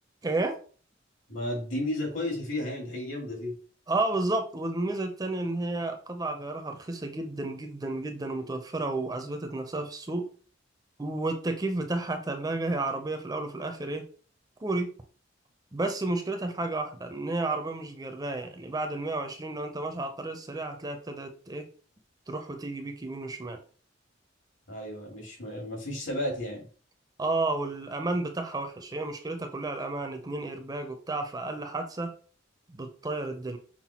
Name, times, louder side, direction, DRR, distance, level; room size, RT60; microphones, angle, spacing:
voice 1, 0.2-0.6 3.9-10.3 11.0-14.0 14.6-14.9 15.7-21.7 22.3-23.6 27.2-32.1 32.7-33.6, right 2 dB, 20° right, 6 dB, 0.5 m, -32 dB
voice 2, 1.3-3.5 24.7-26.7, left 1 dB, 75° left, -1 dB, 2.4 m, -33 dB
5.8 x 2.2 x 4.2 m, 0.41 s
head